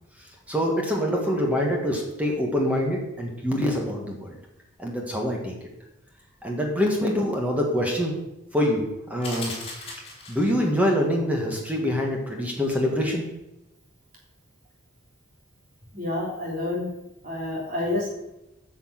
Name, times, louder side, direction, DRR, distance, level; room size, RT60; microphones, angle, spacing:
voice 1, 0.5-4.3 4.8-5.5 6.4-8.2 8.5-9.5 10.3-13.2, equal, 5° right, 0 dB, 1.7 m, -25 dB
sound 1, 9.2-10.7, left 3 dB, 30° left, 3.2 m, -37 dB
voice 2, 15.9-16.9 17.2-18.1, left 2 dB, 40° right, -3 dB, 3.5 m, -28 dB
9.6 x 6.3 x 7.6 m, 0.92 s
head